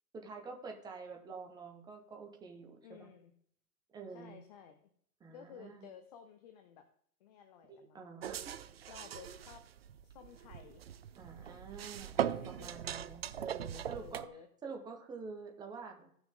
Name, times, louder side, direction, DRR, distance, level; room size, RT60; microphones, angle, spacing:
voice 1, 0.1-3.1 3.9-4.4 5.2-5.9 7.7-8.4 11.2-14.2 14.6-16.1, right 4 dB, 10° right, 3 dB, 1.0 m, -47 dB
voice 2, 2.8-3.3 4.1-4.9 5.3-6.9 7.2-8.1 8.9-9.6 10.0-10.8 12.2-12.7 13.9-14.5, left 8 dB, 25° left, 7 dB, 0.7 m, -54 dB
sound 1, 8.2-14.3, right 9 dB, 40° right, 0.4 m, -40 dB
16.0 x 6.1 x 3.7 m, 0.65 s
hypercardioid pair, 140°, 49 cm